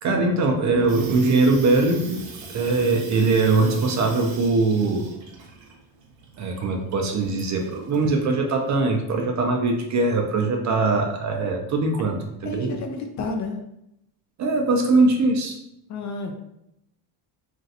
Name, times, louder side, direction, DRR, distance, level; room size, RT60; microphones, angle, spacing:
voice 1, 0.0-2.2 2.5-5.2 6.4-12.2 12.4-12.7 14.4-15.6, right 3 dB, 40° right, 2 dB, 0.5 m, -21 dB
Water tap faucet / Sink (filling or washing), 0.6-8.2, right 4 dB, 75° right, 0.9 m, -41 dB
voice 2, 12.4-13.6 15.9-16.3, left 3 dB, 40° left, 3 dB, 0.4 m, -31 dB
3.0 x 2.5 x 2.7 m, 0.81 s
cardioid pair, 120°, 46 cm